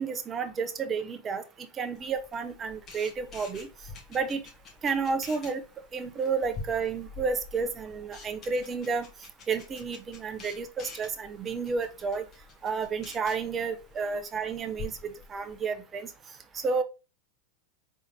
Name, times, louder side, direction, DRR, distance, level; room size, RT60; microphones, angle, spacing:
voice 1, 0.0-3.7 4.1-4.4 4.8-5.6 5.9-9.1 9.5-12.2 12.6-16.1 16.5-16.8, right 5 dB, 30° right, 0.7 m, -31 dB
Camera, 1.9-15.6, left 4 dB, 35° left, 1.9 m, -47 dB
4.0 x 3.6 x 2.8 m
hypercardioid pair, 95°, 0 cm